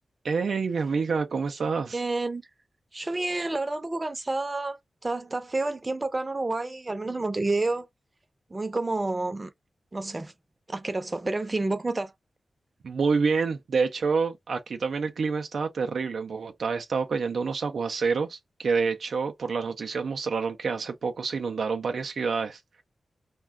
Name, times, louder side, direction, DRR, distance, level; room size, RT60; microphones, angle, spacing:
voice 1, 0.2-2.0 12.8-22.6, right 5 dB, 75° right, 0.4 m, -27 dB
voice 2, 1.9-2.4 2.9-7.9 8.5-9.5 9.9-10.3 10.7-12.1, right 2 dB, 35° right, 0.6 m, -29 dB
2.3 x 2.2 x 3.4 m
cardioid pair, 45°, 0 cm